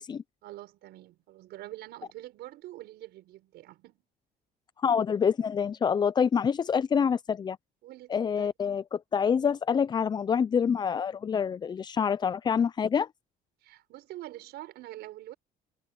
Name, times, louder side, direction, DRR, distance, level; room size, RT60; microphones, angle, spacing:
voice 1, 0.4-4.0 7.8-8.5 13.6-15.3, right 15 dB, 80° right, 5.3 m, -45 dB
voice 2, 4.8-7.6 8.1-13.1, left 7 dB, 25° left, 0.4 m, -26 dB
cardioid pair, 110°, 17 cm